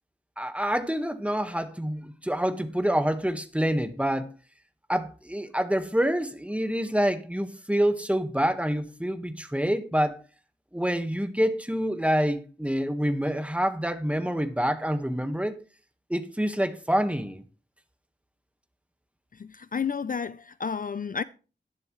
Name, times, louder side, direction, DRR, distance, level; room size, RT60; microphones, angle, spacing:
voice 1, 0.4-4.3 4.9-10.2 10.7-15.6 16.1-17.4, equal, 5° right, 1.4 m, -27 dB
voice 2, 19.3-21.2, left 6 dB, 50° left, 0.4 m, -31 dB
12.0 x 11.5 x 3.1 m
wide cardioid pair, 75°, 19 cm